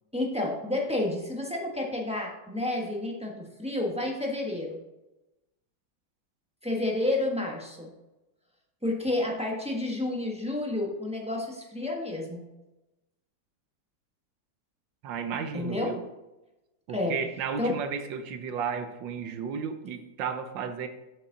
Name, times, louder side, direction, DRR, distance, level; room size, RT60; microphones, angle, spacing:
voice 1, 0.1-4.8 6.6-7.9 8.8-12.5 15.5-15.9 16.9-17.1 17.6-17.7, left 2 dB, 5° right, -2 dB, 1.0 m, -30 dB
voice 2, 15.0-16.0 16.9-20.9, right 6 dB, 75° right, 8 dB, 1.5 m, -33 dB
7.2 x 6.7 x 3.9 m, 0.99 s
omnidirectional pair, 2.1 m